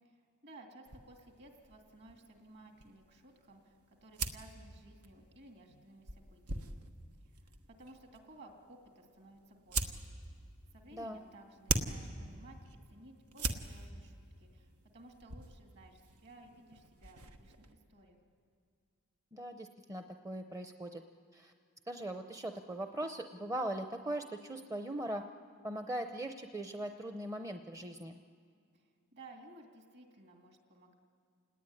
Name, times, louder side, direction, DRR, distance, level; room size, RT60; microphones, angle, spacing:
voice 1, 0.0-6.8 7.2-10.1 10.7-12.6 12.9-18.2 28.7-30.9, right 2 dB, 50° right, 3 dB, 2.9 m, -57 dB
sound 1, 0.9-17.7, right 3 dB, 90° right, 1.4 m, -43 dB
voice 2, 10.9-11.2 19.3-21.0 21.3-21.5 21.9-25.2 25.6-28.2, right 1 dB, 15° right, 6 dB, 0.6 m, -40 dB
28.5 x 18.5 x 9.9 m, 2.3 s
head